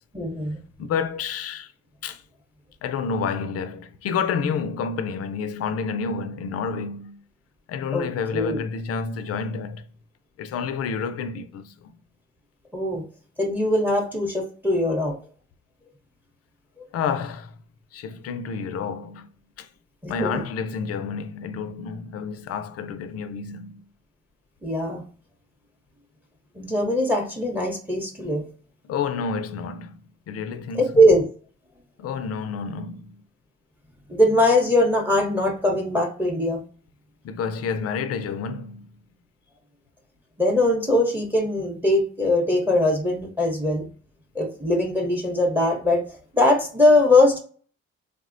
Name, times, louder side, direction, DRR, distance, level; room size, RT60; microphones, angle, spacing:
voice 1, 0.1-0.6 7.9-8.1 8.3-8.6 12.7-13.0 13.4-15.1 20.0-20.4 24.6-25.0 26.6-28.4 30.7-31.2 34.1-36.6 40.4-43.9 44.3-46.0 46.3-47.4, left 1 dB, 5° right, 0.7 m, -21 dB
voice 2, 0.8-1.7 2.0-2.2 2.8-7.2 7.7-9.9 10.4-11.7 16.9-17.6 17.9-19.3 19.6-19.7 20.1-23.8 28.8-30.0 30.3-30.9 32.0-33.2 37.2-39.0, left 6 dB, 55° left, 0.4 m, -29 dB
3.3 x 2.0 x 2.5 m
cardioid pair, 90°, 30 cm